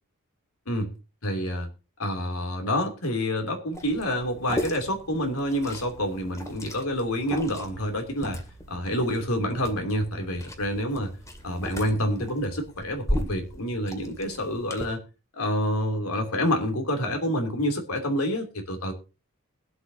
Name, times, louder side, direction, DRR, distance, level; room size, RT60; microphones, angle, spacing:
voice 1, 1.2-1.7 2.0-8.4 8.7-11.2 11.4-15.0 15.3-18.9, equal, 80° left, 4 dB, 3.0 m, -28 dB
Liquid, 3.7-14.8, equal, 15° left, 2.1 m, -37 dB
21.5 x 8.0 x 2.8 m, 0.30 s
head